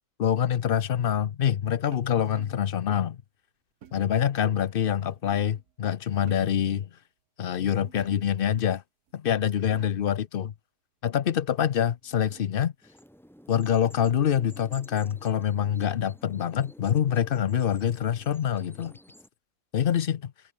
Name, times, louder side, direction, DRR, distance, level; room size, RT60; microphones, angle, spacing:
voice 1, 0.2-3.2 3.9-6.9 7.4-8.8 9.1-10.5 11.0-12.7 13.5-18.9 19.7-20.3, left 9 dB, 65° left, 0.5 m, -25 dB
sound 1, 1.9-2.7 3.8-4.2 4.9-5.7 6.1-6.7 7.8-8.5 9.1-9.2 9.4-10.2 11.5-12.7, right 9 dB, 65° right, 1.6 m, -52 dB
sound 2, 12.8-19.3, equal, ahead, 4.1 m, -52 dB
omnidirectional pair, 1.8 m